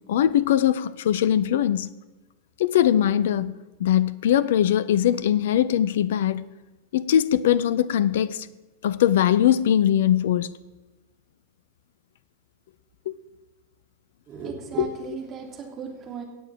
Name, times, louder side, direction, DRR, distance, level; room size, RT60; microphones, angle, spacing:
voice 1, 0.1-1.9 2.6-6.5 6.9-8.5 8.8-10.5 13.1-13.2 14.8-14.9, left 10 dB, 55° left, 0.5 m, -21 dB
voice 2, 14.3-16.2, right 5 dB, 30° right, 3.1 m, -35 dB
18.0 x 7.0 x 7.6 m
figure-of-eight pair, 90°, 0 cm